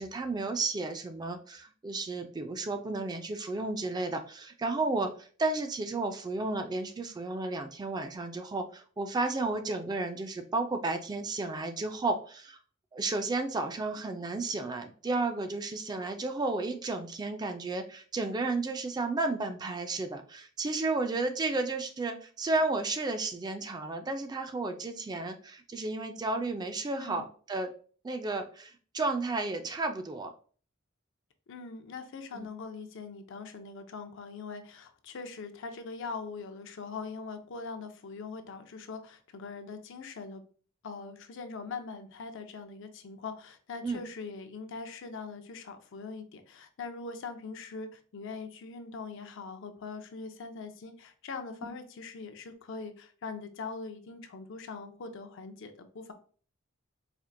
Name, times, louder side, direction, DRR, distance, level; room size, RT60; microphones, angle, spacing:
voice 1, 0.0-12.6 12.9-27.7 28.0-30.3 32.3-32.5 43.8-44.0, right 3 dB, 20° right, 7 dB, 0.3 m, -32 dB
voice 2, 31.5-40.4 40.8-56.1, left 4 dB, 65° left, 7 dB, 0.5 m, -42 dB
4.3 x 2.4 x 2.5 m, 0.42 s
head